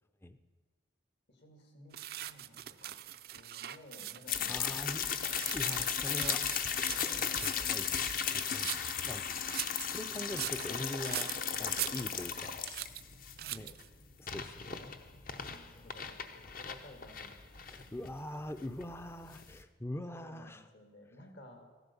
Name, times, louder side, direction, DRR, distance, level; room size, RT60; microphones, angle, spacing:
voice 1, 1.3-2.9 3.3-4.7 5.6-5.8 6.1-6.6 6.9-7.9 8.9-9.6 13.3-13.8 15.2-17.8 20.1-21.7, left 1 dB, 70° left, 4 dB, 2.6 m, -56 dB
sound 1, 1.9-4.4 4.9-9.0 9.4-12.4 12.7-13.0 13.4-13.9, right 13 dB, 55° right, 0.4 m, -42 dB
sound 2, 4.3-19.6, left 7 dB, 50° left, 0.8 m, -36 dB
voice 2, 4.5-5.1 5.5-6.4 7.4-8.0 8.3-9.2 9.5-11.3 11.6-12.5 13.5-13.7 14.2-15.0 17.6-20.7, left 1 dB, 15° left, 10 dB, 0.5 m, -43 dB
15.0 x 12.0 x 7.0 m, 1.4 s
head